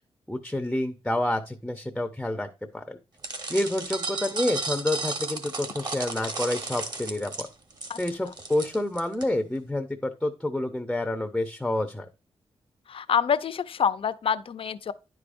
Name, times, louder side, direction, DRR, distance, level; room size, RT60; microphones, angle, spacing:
voice 1, 0.3-2.5 2.7-3.0 3.5-7.5 8.0-12.1, left 1 dB, 5° left, 0.6 m, -28 dB
sound 1, 3.2-9.2, right 3 dB, 40° right, 1.4 m, -34 dB
voice 2, 12.9-14.9, left 7 dB, 55° left, 0.6 m, -26 dB
10.5 x 4.9 x 2.5 m
wide cardioid pair, 140°, 11 cm